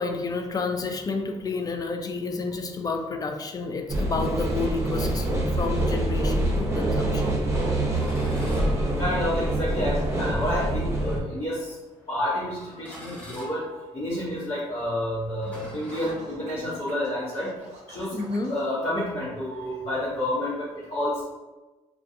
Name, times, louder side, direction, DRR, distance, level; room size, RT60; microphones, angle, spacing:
voice 1, 0.0-7.4 18.1-18.5, left 3 dB, 30° left, 5 dB, 0.4 m, -30 dB
sound 1, 3.9-11.2, right 1 dB, 25° right, 0.7 m, -25 dB
voice 2, 7.9-8.6 9.0-11.7 12.1-17.5 17.9-18.2 18.5-21.2, left 1 dB, 55° left, -10 dB, 1.0 m, -29 dB
sound 2, 7.9-9.6 10.4-10.6 11.4-11.9 12.7-16.8, equal, 10° left, 1.2 m, -45 dB
Scratching (performance technique), 15.9-18.7, right 2 dB, 75° right, 0.6 m, -47 dB
2.5 x 2.3 x 2.5 m, 1.1 s
cardioid pair, 90°, 12 cm